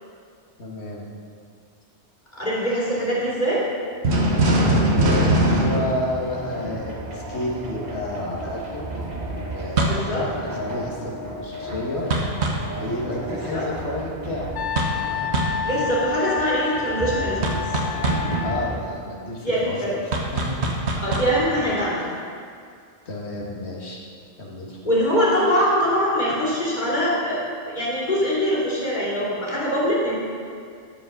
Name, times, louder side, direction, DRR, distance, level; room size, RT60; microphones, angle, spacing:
voice 1, 0.6-1.1 4.9-8.9 9.4-12.0 12.7-14.5 18.4-19.8 20.3-20.6 23.1-24.0 24.4-24.8, left 1 dB, 75° left, -2 dB, 1.9 m, -30 dB
voice 2, 2.3-3.6 9.8-10.3 13.3-13.7 15.6-17.6 19.4-20.0 21.0-22.0 24.8-30.2, equal, 40° left, -7 dB, 2.9 m, -23 dB
sound 1, 4.0-6.9 9.8-10.1 12.1-12.7 14.8-15.1 15.3-15.6 17.4-18.3 20.1-21.4, right 1 dB, 75° right, 1.4 m, -22 dB
sound 2, 5.6-18.8, right 1 dB, 40° right, 1.1 m, -34 dB
Wind instrument woodwind instrument, 14.5-18.8, left 8 dB, 90° left, 0.9 m, -29 dB
13.0 x 5.0 x 6.5 m, 2.2 s
omnidirectional pair, 1.1 m